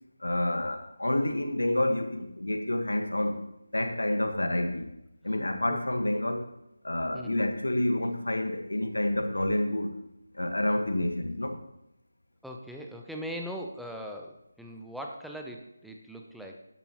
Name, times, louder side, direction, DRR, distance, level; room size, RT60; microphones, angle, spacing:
voice 1, 0.2-3.4 3.7-4.9 5.2-6.5 6.8-10.0 10.3-11.6, left 1 dB, 70° left, 5 dB, 1.4 m, -28 dB
voice 2, 7.1-7.4 12.4-16.6, equal, ahead, 1 dB, 0.7 m, -40 dB
12.5 x 11.0 x 3.0 m, 0.85 s
figure-of-eight pair, 160°, 0 cm